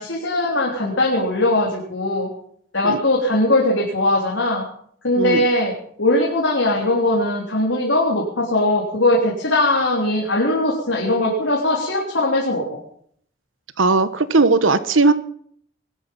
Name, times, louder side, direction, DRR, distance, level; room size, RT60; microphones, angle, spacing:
voice 1, 0.0-2.3 2.7-4.6 5.0-12.8, left 1 dB, 75° left, -2 dB, 3.7 m, -20 dB
voice 2, 5.1-5.5 13.8-15.1, right 3 dB, 90° right, 13 dB, 1.2 m, -17 dB
21.0 x 12.5 x 5.5 m, 0.63 s
head